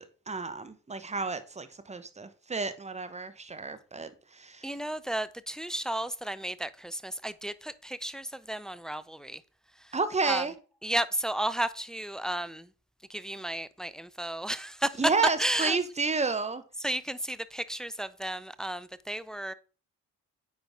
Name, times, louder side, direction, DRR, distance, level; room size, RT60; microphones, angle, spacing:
voice 1, 0.0-4.7 9.9-10.5 15.0-16.6, right 4 dB, 15° right, 1.1 m, -31 dB
voice 2, 4.6-9.4 10.3-10.5 10.8-12.7 13.1-14.9 15.4-15.8 16.8-19.5, right 1 dB, ahead, 0.4 m, -33 dB
8.9 x 5.4 x 3.7 m
figure-of-eight pair, 45°, 47 cm